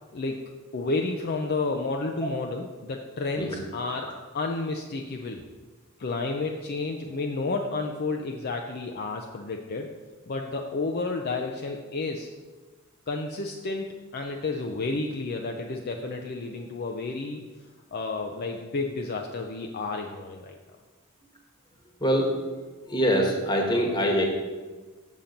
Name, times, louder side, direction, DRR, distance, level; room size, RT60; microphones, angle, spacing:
voice 1, 0.7-4.1 4.3-5.4 6.0-9.9 10.3-12.3 13.1-17.4 17.9-20.5, left 3 dB, 45° left, 2 dB, 0.5 m, -31 dB
voice 2, 22.9-24.3, equal, 20° left, 1 dB, 1.3 m, -24 dB
7.2 x 5.8 x 5.1 m, 1.4 s
head